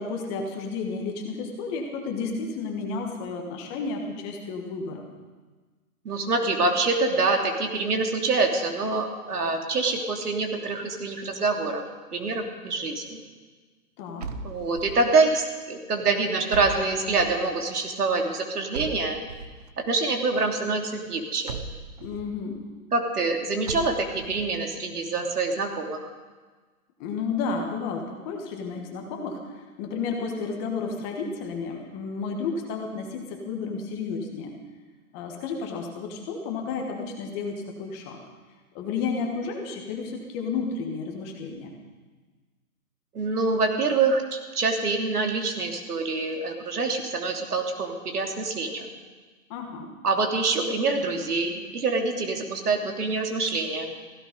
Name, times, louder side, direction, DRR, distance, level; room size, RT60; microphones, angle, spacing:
voice 1, 0.0-5.0 14.0-14.3 22.0-22.6 27.0-34.6 35.1-38.2 38.7-41.7 49.5-49.9, left 4 dB, 15° left, 2 dB, 1.3 m, -32 dB
voice 2, 6.0-11.8 12.1-13.2 14.4-19.2 19.9-21.6 22.9-26.1 43.1-48.9 50.0-53.9, right 3 dB, 80° right, 2 dB, 3.2 m, -26 dB
sound 1, 14.2-15.2 16.5-17.5 18.7-19.7 21.5-22.3 23.7-24.5, right 4 dB, 30° right, 0.6 m, -37 dB
16.0 x 16.0 x 5.2 m, 1.4 s
hypercardioid pair, 160°, 45 cm